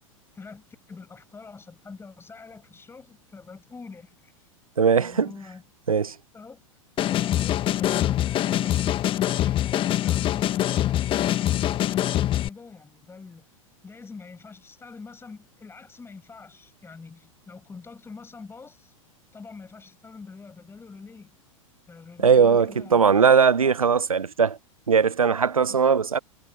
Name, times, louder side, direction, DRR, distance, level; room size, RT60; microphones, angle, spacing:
voice 1, 0.3-4.5 5.0-5.6 6.3-6.6 7.1-13.5 13.8-18.9 19.3-21.4 21.9-24.0 25.7-25.8, left 4 dB, 15° left, 7.1 m, -45 dB
voice 2, 4.8-5.3 5.9-6.1 22.2-24.6 24.9-26.2, right 6 dB, 80° right, 0.9 m, -19 dB
sound 1, 7.0-12.5, left 13 dB, 30° left, 1.3 m, -24 dB
figure-of-eight pair, 95°, 18 cm